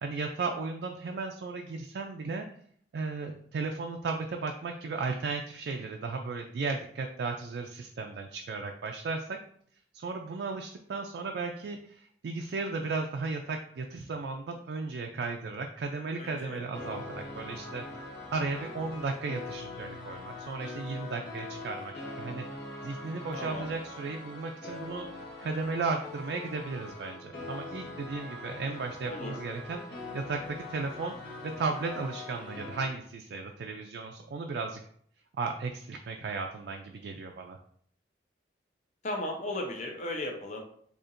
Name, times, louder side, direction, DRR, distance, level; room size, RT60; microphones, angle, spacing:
voice 1, 0.0-2.5 2.9-9.4 9.9-22.5 22.8-29.8 30.1-31.2 31.4-34.8 35.4-37.6, right 4 dB, 65° right, 3 dB, 0.3 m, -35 dB
voice 2, 16.2-16.7 23.3-23.7 29.0-29.4 39.0-40.6, left 1 dB, 40° left, 1 dB, 0.6 m, -36 dB
sound 1, 16.7-32.8, left 2 dB, 65° left, 1.0 m, -42 dB
4.2 x 2.8 x 2.5 m, 0.63 s
head